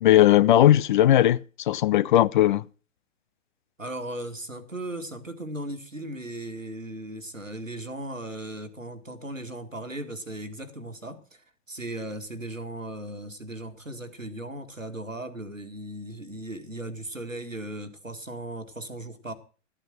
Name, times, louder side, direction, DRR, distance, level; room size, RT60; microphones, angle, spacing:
voice 1, 0.0-1.4 1.7-2.6, left 12 dB, 40° left, 0.6 m, -18 dB
voice 2, 3.8-19.3, right 1 dB, 90° right, 1.9 m, -37 dB
13.5 x 9.2 x 6.2 m
figure-of-eight pair, 110°, 38 cm